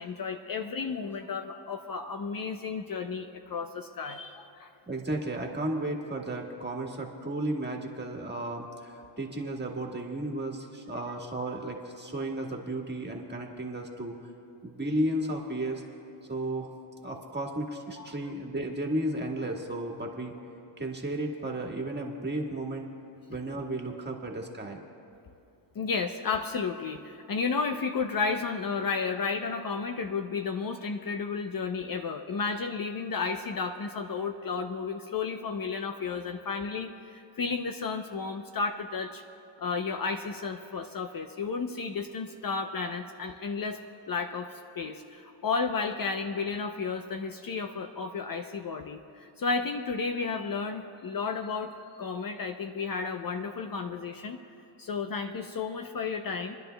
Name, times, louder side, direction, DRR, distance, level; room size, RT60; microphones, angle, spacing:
voice 1, 0.0-4.7 18.0-18.1 25.7-39.2 39.6-43.8 44.1-54.4 54.8-56.6, left 5 dB, 45° left, 6 dB, 0.7 m, -32 dB
voice 2, 4.9-14.2 14.6-15.8 16.3-16.7 17.0-20.3 20.8-22.9 23.3-24.8, right 1 dB, 20° right, 0 dB, 1.6 m, -33 dB
28.5 x 11.0 x 2.3 m, 2.7 s
cardioid pair, 70°, 49 cm